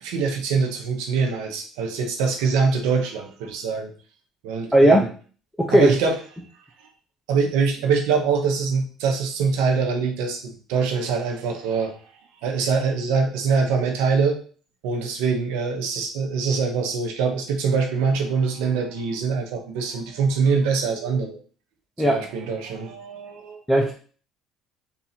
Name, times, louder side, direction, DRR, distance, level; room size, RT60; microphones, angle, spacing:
voice 1, 0.0-3.9 4.4-5.0 5.7-6.2 7.3-12.0 12.4-14.4 14.8-21.4 22.0-23.6, right 5 dB, 90° right, 3 dB, 1.0 m, -24 dB
voice 2, 4.7-5.1 5.6-5.9 22.0-22.2 23.7-23.9, right 1 dB, 5° left, 0 dB, 0.6 m, -16 dB
4.0 x 2.7 x 4.2 m, 0.41 s
cardioid pair, 105°, 0 cm